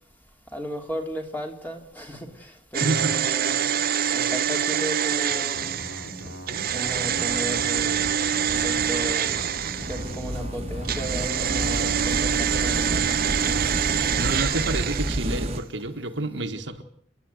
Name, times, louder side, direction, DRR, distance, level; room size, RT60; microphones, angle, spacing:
voice 1, 0.5-3.7 4.1-5.9 6.7-8.2 8.6-9.5 9.9-13.9, equal, 10° left, 2.9 m, -35 dB
sound 1, 2.7-10.3 10.8-15.6 15.8-15.9, right 9 dB, 55° right, 0.8 m, -26 dB
voice 2, 2.8-3.2 13.9-16.8, right 2 dB, 70° right, 1.6 m, -29 dB
sound 2, 5.5-14.6, equal, 85° left, 4.7 m, -40 dB
sound 3, 6.9-15.6, right 1 dB, 35° right, 1.7 m, -32 dB
30.0 x 11.0 x 8.2 m
head